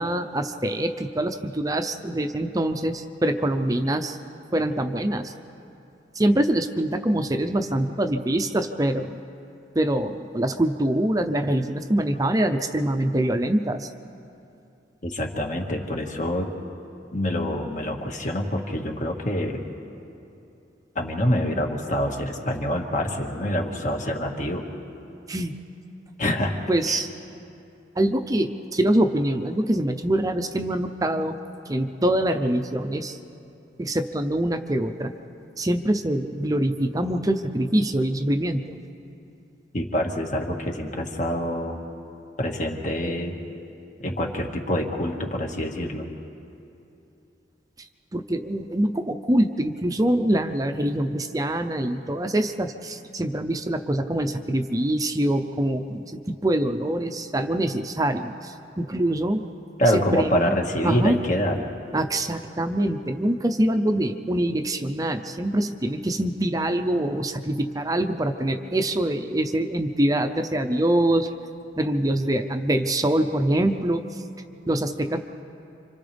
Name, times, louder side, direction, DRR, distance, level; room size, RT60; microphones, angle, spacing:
voice 1, 0.0-4.2 4.5-5.3 6.2-9.2 9.7-13.9 25.3-25.6 26.7-27.1 28.0-31.4 31.7-33.2 33.8-35.1 35.6-38.8 48.1-59.5 59.9-60.5 60.8-61.2 61.9-71.3 71.8-74.2 74.7-75.2, right 1 dB, 20° right, 7 dB, 0.7 m, -24 dB
voice 2, 15.0-16.5 17.1-19.6 21.0-24.6 26.2-26.6 26.9-27.0 39.7-41.8 42.4-43.4 44.0-46.1 59.8-61.7, equal, 45° left, 1 dB, 1.9 m, -26 dB
29.5 x 26.0 x 3.5 m, 2.7 s
head